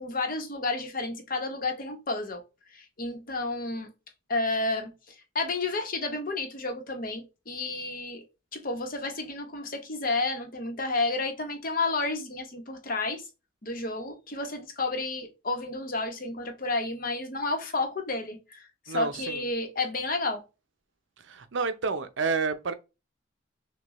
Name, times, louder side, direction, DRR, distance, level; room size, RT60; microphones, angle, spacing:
voice 1, 0.0-2.4 2.7-3.9 4.3-8.2 8.5-13.2 13.6-20.4, left 3 dB, 45° left, 0.9 m, -31 dB
voice 2, 18.9-19.4 21.2-22.7, right 4 dB, 70° right, 0.6 m, -30 dB
6.2 x 2.2 x 3.0 m
head